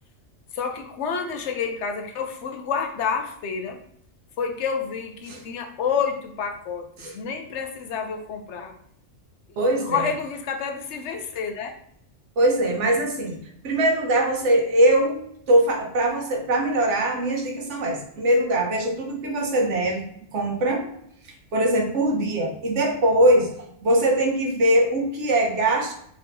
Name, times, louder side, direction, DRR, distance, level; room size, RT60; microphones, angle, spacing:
voice 1, 0.5-3.8 4.4-8.7 9.8-11.8, left 6 dB, 65° left, 5 dB, 0.9 m, -29 dB
voice 2, 9.6-10.0 12.4-13.4 13.6-20.0 20.3-20.9 21.5-23.5 23.8-25.9, right 1 dB, 65° right, 1 dB, 1.2 m, -21 dB
4.1 x 3.5 x 2.6 m, 0.69 s
omnidirectional pair, 1.4 m